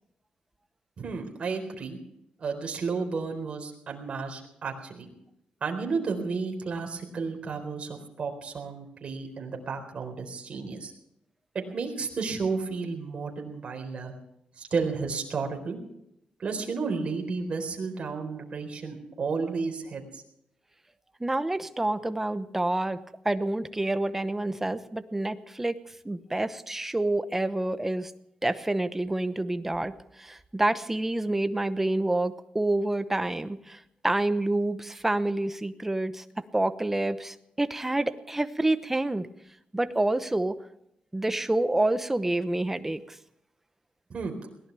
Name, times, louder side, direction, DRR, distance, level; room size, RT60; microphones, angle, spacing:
voice 1, 1.0-2.0 2.4-5.1 5.6-10.9 11.5-14.1 14.6-15.8 16.4-20.2 44.1-44.3, right 4 dB, 45° right, 2 dB, 4.1 m, -32 dB
voice 2, 21.2-23.0 23.2-25.8 26.0-28.1 28.4-29.9 30.2-36.2 36.5-39.3 39.7-40.5 41.1-43.2, right 2 dB, 10° right, 11 dB, 0.9 m, -28 dB
22.0 x 17.5 x 3.5 m, 0.78 s
wide cardioid pair, 135°, 3 cm